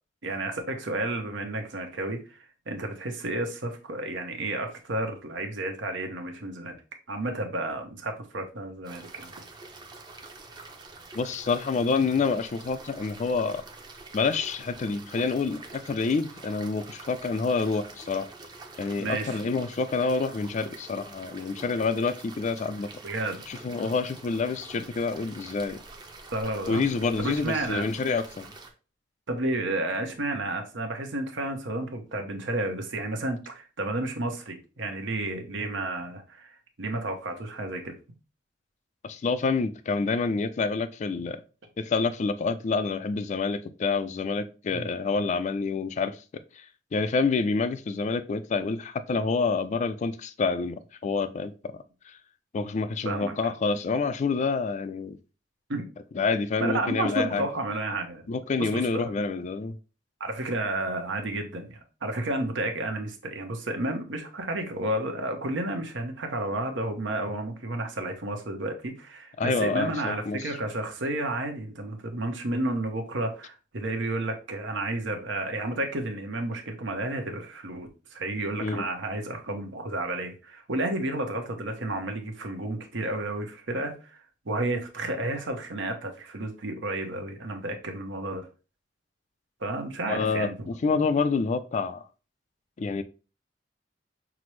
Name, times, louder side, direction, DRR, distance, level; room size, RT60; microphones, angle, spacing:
voice 1, 0.2-6.8 7.1-9.3 19.0-19.4 23.0-23.4 26.3-26.8 27.2-27.8 29.3-37.9 44.7-44.9 53.0-53.4 55.7-55.8 56.6-58.3 58.6-59.1 60.2-84.2 84.4-88.5 89.6-90.5, right 2 dB, 85° right, 0.8 m, -31 dB
sound 1, 8.8-28.7, right 3 dB, 25° right, 0.6 m, -46 dB
voice 2, 11.1-13.6 14.1-18.3 18.8-22.9 23.5-25.8 26.7-28.4 39.0-41.4 41.8-46.2 46.5-46.7 46.9-52.2 52.5-55.2 56.1-57.5 58.3-59.8 69.4-70.5 78.6-78.9 90.1-92.0 92.8-93.0, left 4 dB, 40° left, 0.3 m, -27 dB
5.9 x 2.0 x 3.1 m
head